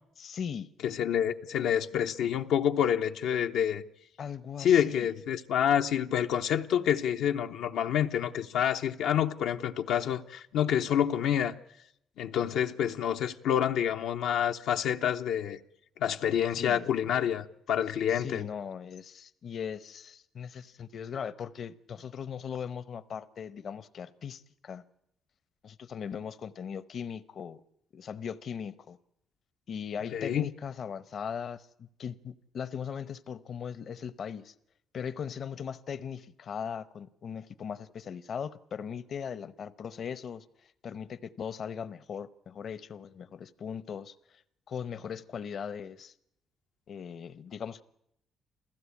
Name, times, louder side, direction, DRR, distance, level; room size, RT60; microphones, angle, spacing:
voice 1, 0.2-0.7 4.2-5.1 16.6-16.9 18.1-24.8 25.6-27.6 27.9-29.0 29.7-34.5 34.9-44.4 44.7-46.1 46.9-47.8, left 7 dB, 60° left, 0.9 m, -39 dB
voice 2, 0.8-3.8 4.6-11.5 12.2-15.6 16.0-18.5 30.1-30.5, left 9 dB, 85° left, 0.8 m, -28 dB
28.0 x 15.5 x 8.5 m
cardioid pair, 90°, 0 cm